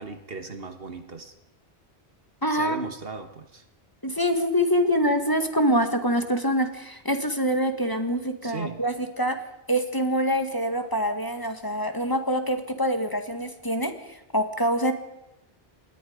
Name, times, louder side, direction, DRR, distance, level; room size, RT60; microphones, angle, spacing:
voice 1, 0.0-1.3 2.5-3.6 8.4-8.9, right 4 dB, 65° right, 8 dB, 1.8 m, -37 dB
voice 2, 2.4-2.9 4.0-9.4 9.7-14.9, equal, 20° left, 6 dB, 1.8 m, -25 dB
27.5 x 20.5 x 5.2 m, 0.88 s
omnidirectional pair, 1.1 m